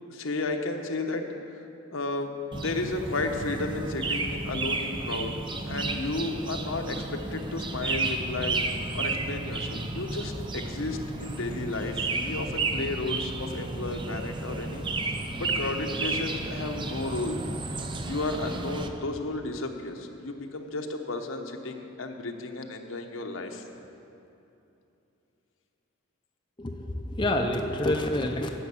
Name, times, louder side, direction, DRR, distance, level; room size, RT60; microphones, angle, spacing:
voice 1, 0.1-1.4 1.9-5.3 5.7-8.6 8.9-14.9 15.4-17.4 18.0-23.6, left 2 dB, 80° left, 4 dB, 1.0 m, -33 dB
sound 1, 2.5-18.9, right 3 dB, 25° right, 0.5 m, -32 dB
voice 2, 26.6-28.5, left 1 dB, 25° left, 3 dB, 0.5 m, -27 dB
11.0 x 6.6 x 8.4 m, 2.8 s
head